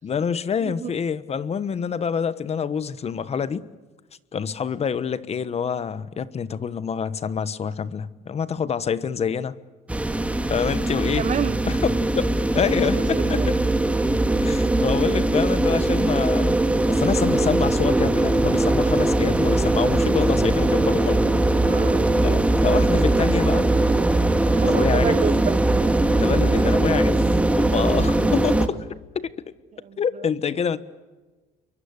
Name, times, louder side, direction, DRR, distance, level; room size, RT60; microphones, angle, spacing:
voice 1, 0.0-3.6 4.3-9.5 10.5-11.3 11.7-13.6 14.4-16.6 16.9-21.3 22.2-23.7 24.6-25.2 26.2-27.2 27.6-29.3 30.0-30.8, left 7 dB, 40° left, 1.2 m, -26 dB
voice 2, 0.6-1.0 11.1-11.6 12.7-13.5 21.6-22.1 24.5-25.6 26.0-26.2 29.7-30.6, right 8 dB, 45° right, 1.0 m, -30 dB
sound 1, 9.9-28.7, right 2 dB, 5° right, 2.0 m, -20 dB
27.5 x 23.5 x 8.4 m
cardioid pair, 110°, 17 cm